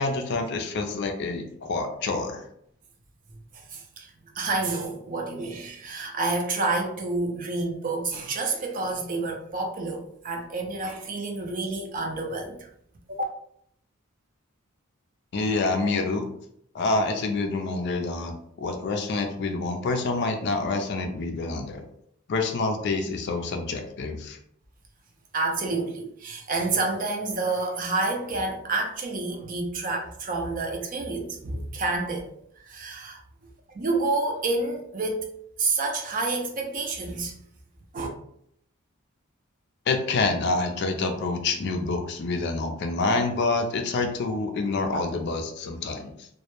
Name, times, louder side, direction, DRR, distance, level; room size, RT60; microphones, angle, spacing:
voice 1, 0.0-2.5 15.3-16.3 16.7-18.4 18.6-21.8 22.3-24.4 39.9-46.3, left 3 dB, 55° left, 5 dB, 0.4 m, -27 dB
voice 2, 3.5-12.7 13.1-13.2 25.3-32.3 32.6-33.2 33.7-35.2 35.6-37.3 37.9-38.1, right 3 dB, 40° right, 1 dB, 0.4 m, -29 dB
2.2 x 2.0 x 2.9 m, 0.71 s
head